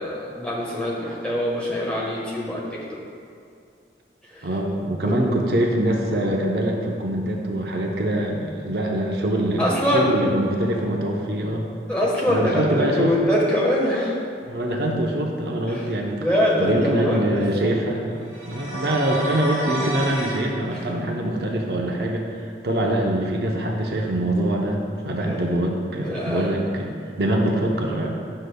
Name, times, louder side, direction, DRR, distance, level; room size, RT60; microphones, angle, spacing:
voice 1, 0.0-2.8 4.3-4.5 5.0-5.1 9.6-10.2 11.9-14.2 15.7-15.9 16.2-17.4 20.7-20.8 25.2-25.5 26.0-26.5, equal, 5° left, -6 dB, 1.2 m, -23 dB
voice 2, 4.4-11.7 12.3-13.1 14.5-16.2 16.6-28.1, right 1 dB, 65° right, 0 dB, 0.7 m, -24 dB
sound 1, 18.3-20.4, right 1 dB, 35° right, 1.5 m, -30 dB
9.6 x 6.5 x 2.3 m, 2.4 s
head